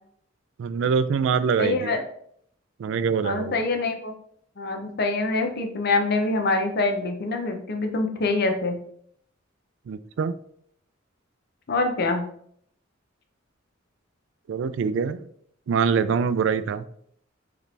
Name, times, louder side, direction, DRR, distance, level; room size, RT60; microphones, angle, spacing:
voice 1, 0.6-1.9 2.8-3.6 9.9-10.3 14.5-15.3 15.7-16.9, right 6 dB, 70° right, 13 dB, 0.3 m, -24 dB
voice 2, 1.6-2.1 3.2-4.1 4.6-8.8 11.7-12.3, left 3 dB, 55° left, 5 dB, 0.7 m, -25 dB
4.8 x 3.2 x 3.3 m, 0.65 s
head